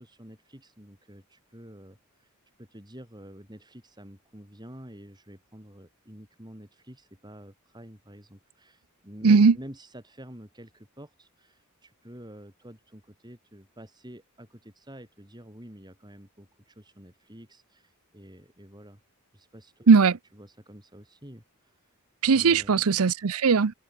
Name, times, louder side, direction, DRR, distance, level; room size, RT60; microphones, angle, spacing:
voice 1, 0.0-2.3 2.6-19.0 19.3-19.9 20.3-21.8 22.3-22.9, equal, 20° right, 8.0 m, -48 dB
voice 2, 9.2-9.5 19.9-20.2 22.2-23.7, right 5 dB, 85° right, 0.6 m, -18 dB
head